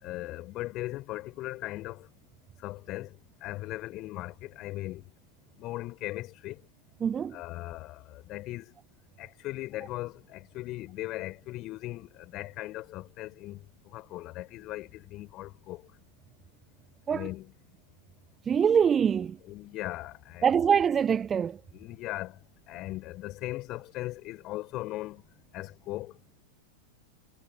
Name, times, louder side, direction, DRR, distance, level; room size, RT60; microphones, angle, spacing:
voice 1, 0.0-2.1 2.6-3.2 3.4-5.1 5.6-6.6 7.3-8.7 9.2-15.8 17.1-17.5 19.5-20.5 21.7-22.4 22.7-25.2 25.5-26.1, left 17 dB, 35° left, 4.4 m, -38 dB
voice 2, 7.0-7.4 17.1-17.3 18.5-19.4 20.4-21.6, right 7 dB, 20° right, 0.4 m, -24 dB
figure-of-eight pair, 90°, 0 cm